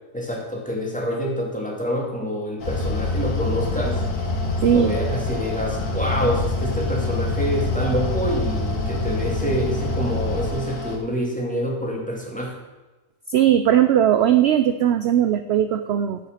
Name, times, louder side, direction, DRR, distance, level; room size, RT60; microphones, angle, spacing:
voice 1, 0.1-4.0 4.6-12.6, equal, 5° left, -2 dB, 2.4 m, -27 dB
Mechanical fan, 2.6-11.0, left 3 dB, 70° left, 1.9 m, -34 dB
sound 1, 2.7-10.5, left 2 dB, 40° left, 1.6 m, -26 dB
voice 2, 4.6-5.0 13.3-16.2, right 10 dB, 65° right, 10 dB, 0.7 m, -18 dB
9.9 x 7.8 x 6.5 m, 1.1 s
omnidirectional pair, 1.5 m